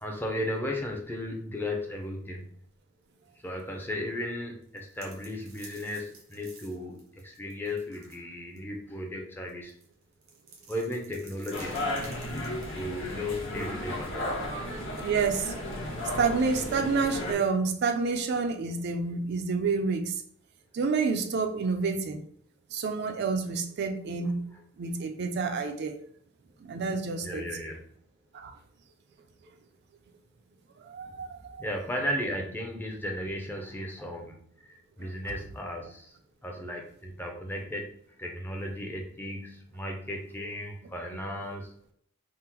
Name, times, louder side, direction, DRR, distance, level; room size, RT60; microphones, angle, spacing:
voice 1, 0.0-2.5 3.4-9.7 10.7-11.8 12.7-14.2 14.8-14.9 27.2-27.8 31.1-31.3 31.6-36.2 36.4-41.7, left 1 dB, 10° left, 2 dB, 0.4 m, -35 dB
sound 1, 4.6-8.2 8.6-8.7 9.5-12.8, right 4 dB, 80° right, 0.9 m, -52 dB
sound 2, 11.5-17.3, left 1 dB, 65° left, 0.8 m, -34 dB
voice 2, 15.0-15.5 16.2-20.2 20.7-22.2 22.7-24.4 24.8-26.0 26.6-27.5 28.3-28.6 30.8-31.6 35.0-35.1, right 4 dB, 55° right, 6 dB, 0.3 m, -29 dB
3.6 x 2.0 x 2.8 m, 0.63 s
head